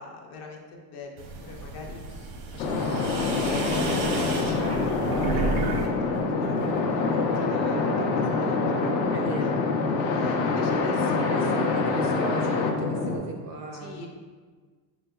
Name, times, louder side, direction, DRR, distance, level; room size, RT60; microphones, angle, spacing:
voice 1, 0.0-5.9 6.4-11.2 13.8-14.1, left 3 dB, 40° left, 1 dB, 0.5 m, -42 dB
sound 1, 1.2-5.9 6.2-6.8, right 3 dB, 85° right, 0.9 m, -32 dB
sound 2, 2.6-13.2, left 3 dB, 70° left, 0.7 m, -25 dB
voice 2, 9.1-9.6 11.2-14.0, right 4 dB, 40° right, 2 dB, 0.4 m, -36 dB
5.5 x 4.0 x 2.3 m, 1.5 s
cardioid pair, 160°, 45 cm